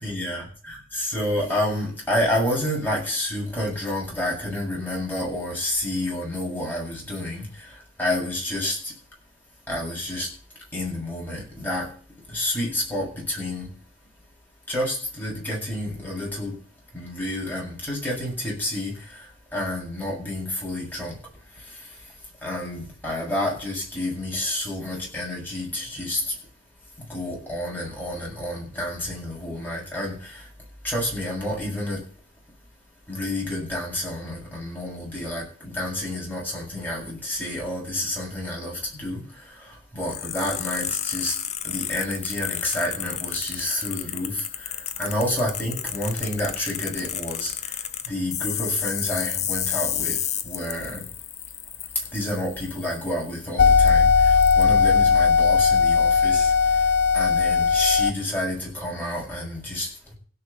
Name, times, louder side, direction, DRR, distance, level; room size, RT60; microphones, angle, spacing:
voice 1, 0.0-9.0 9.7-10.3 10.7-11.9 12.3-13.7 14.7-16.6 16.9-22.1 22.4-26.4 27.0-30.5 30.8-32.0 33.1-51.1 51.9-60.1, left 1 dB, 10° left, 7.9 m, -29 dB
sound 1, 40.0-53.4 53.9-54.0 54.4-54.6, left 10 dB, 35° left, 1.0 m, -32 dB
sound 2, 53.6-58.1, left 5 dB, 60° left, 1.0 m, -18 dB
16.5 x 6.2 x 8.5 m
head